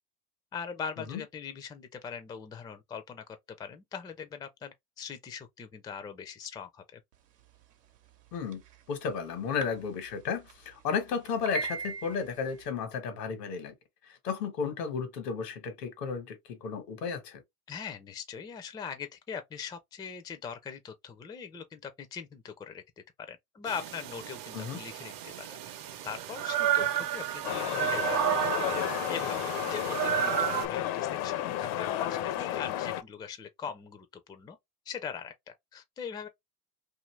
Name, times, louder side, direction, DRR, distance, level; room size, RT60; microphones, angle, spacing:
voice 1, 0.5-7.0 17.7-22.8 23.2-25.6 26.0-34.6 34.9-36.3, left 7 dB, 10° left, 0.3 m, -41 dB
voice 2, 8.3-8.6 8.9-13.7 14.2-17.4 24.5-24.8, left 6 dB, 85° left, 1.2 m, -33 dB
sound 1, 8.3-8.8 9.6-9.7 10.0-10.1 10.5-10.6 11.2-12.6, right 4 dB, 85° right, 0.9 m, -36 dB
sound 2, 23.7-30.7, right 11 dB, 45° right, 0.6 m, -32 dB
sound 3, 27.4-33.0, left 12 dB, 60° left, 0.6 m, -32 dB
2.7 x 2.6 x 3.1 m
hypercardioid pair, 85°, 47 cm